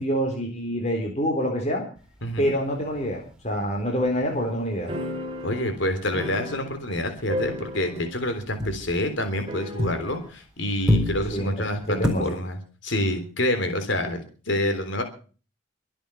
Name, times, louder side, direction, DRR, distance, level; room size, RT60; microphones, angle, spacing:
voice 1, 0.0-1.8 2.4-4.9 11.3-11.5 11.9-12.3, equal, 35° left, 1 dB, 4.1 m, -26 dB
sound 1, 2.0-5.7 5.9-6.3 6.6-10.4 10.7-12.1, left 1 dB, 5° right, 4.0 m, -30 dB
voice 2, 2.2-2.5 5.4-12.6 12.8-15.0, left 1 dB, 65° left, 7 dB, 3.6 m, -27 dB
sound 2, 4.9-7.0 7.3-8.3 8.5-8.6 9.5-10.3, left 1 dB, 25° right, 3.3 m, -34 dB
23.5 x 8.9 x 5.7 m, 0.39 s
head